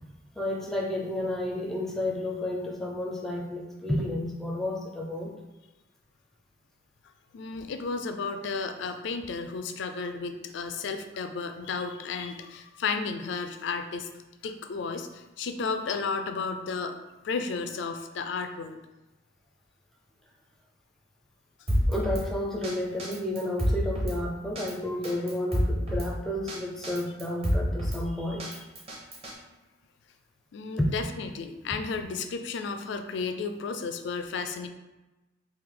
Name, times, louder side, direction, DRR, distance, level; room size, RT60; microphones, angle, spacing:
voice 1, 0.4-5.3 21.9-28.7 30.8-30.9, left 1 dB, ahead, -1 dB, 0.4 m, -31 dB
voice 2, 7.3-14.1 14.4-17.0 17.2-18.8 30.5-34.7, left 4 dB, 60° left, 7 dB, 0.3 m, -33 dB
Drum kit, 21.7-22.2 22.6-22.7 23.0-24.2 24.6-24.7 25.0-26.1 26.5-26.6 26.8-28.0 28.4-29.3, equal, 30° right, 0.8 m, -28 dB
3.2 x 2.6 x 3.7 m, 1.1 s
head